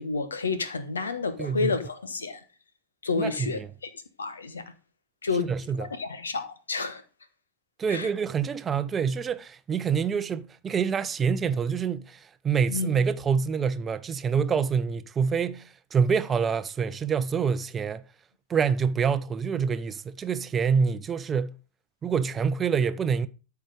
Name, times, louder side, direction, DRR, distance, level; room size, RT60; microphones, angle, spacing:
voice 1, 0.0-2.4 3.0-3.9 4.2-4.6 5.2-5.5 5.8-7.0 7.9-8.1 12.7-12.9, left 4 dB, 70° left, 1.2 m, -30 dB
voice 2, 1.4-1.7 3.2-3.7 5.4-5.9 7.8-18.0 18.5-21.5 22.0-23.3, right 6 dB, 20° right, 0.6 m, -26 dB
13.0 x 4.8 x 5.0 m
figure-of-eight pair, 90°, 0 cm